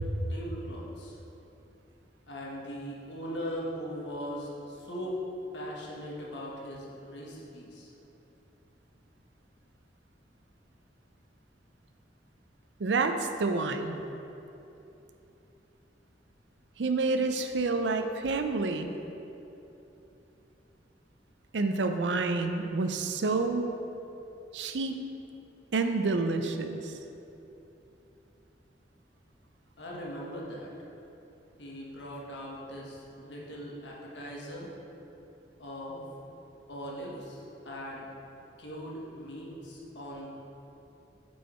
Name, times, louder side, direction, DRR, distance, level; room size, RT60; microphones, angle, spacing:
voice 1, 0.3-1.2 2.3-5.2 5.5-7.9 29.8-30.7 31.6-34.7 35.6-36.0 36.7-38.1 38.6-40.3, equal, 80° left, -4 dB, 1.3 m, -40 dB
voice 2, 12.8-14.0 16.8-19.0 21.5-23.7 24.5-25.0 25.7-27.0, right 3 dB, 80° right, 7 dB, 0.5 m, -28 dB
8.2 x 4.7 x 4.4 m, 3.0 s
head